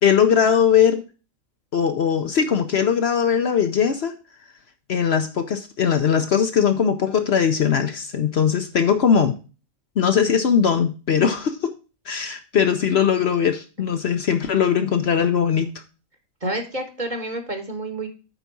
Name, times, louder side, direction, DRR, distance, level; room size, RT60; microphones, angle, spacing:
voice 1, 0.0-1.0 1.7-4.1 4.9-9.3 10.0-11.7 12.1-15.7, left 7 dB, 60° left, 7 dB, 0.9 m, -20 dB
voice 2, 16.4-18.1, right 2 dB, 35° right, 5 dB, 1.4 m, -29 dB
9.1 x 4.1 x 6.0 m, 0.33 s
omnidirectional pair, 1.4 m